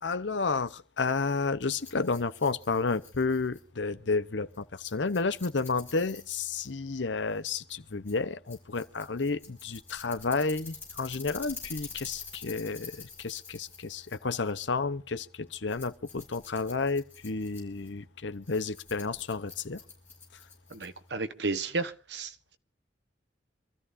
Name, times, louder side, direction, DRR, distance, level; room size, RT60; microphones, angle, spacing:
voice 1, 0.0-19.8, left 4 dB, 80° left, 0.9 m, -31 dB
Rattle, 1.6-21.2, left 5 dB, 10° left, 5.8 m, -48 dB
voice 2, 20.7-22.6, right 3 dB, 70° right, 1.2 m, -33 dB
26.0 x 13.5 x 2.6 m
head